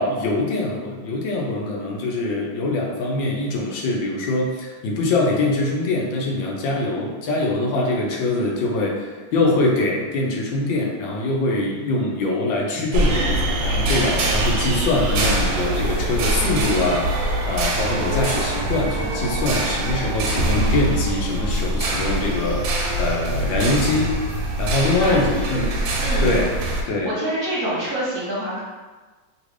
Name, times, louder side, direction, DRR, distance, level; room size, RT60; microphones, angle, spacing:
voice 1, 0.0-24.1 24.6-25.7 26.2-26.5 26.9-27.1, left 2 dB, 90° left, -1 dB, 1.4 m, -23 dB
sound 1, 12.9-26.8, right 1 dB, 90° right, 1.3 m, -23 dB
voice 2, 25.0-25.6 25.9-26.4 27.0-28.6, right 1 dB, 40° right, -8 dB, 0.8 m, -26 dB
3.3 x 2.5 x 3.2 m, 1.3 s
omnidirectional pair, 2.0 m